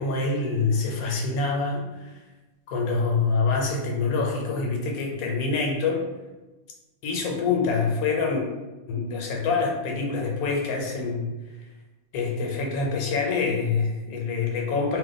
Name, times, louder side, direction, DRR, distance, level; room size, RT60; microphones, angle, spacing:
voice 1, 0.0-2.1 2.7-6.0 7.0-8.4 8.9-11.3 12.1-15.0, left 4 dB, 85° left, 0 dB, 1.1 m, -26 dB
2.5 x 2.2 x 3.9 m, 1.1 s
omnidirectional pair, 1.5 m